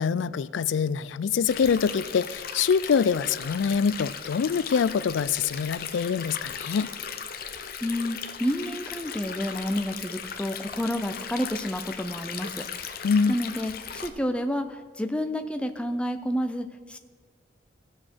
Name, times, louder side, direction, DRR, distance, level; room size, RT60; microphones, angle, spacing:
voice 1, 0.0-6.9 13.0-13.3, left 6 dB, 85° left, 18 dB, 0.4 m, -25 dB
Stream, 1.5-14.1, left 7 dB, 50° left, 0.7 m, -37 dB
voice 2, 7.8-17.0, equal, 5° left, 7 dB, 0.5 m, -30 dB
17.0 x 6.4 x 4.5 m, 1.5 s
head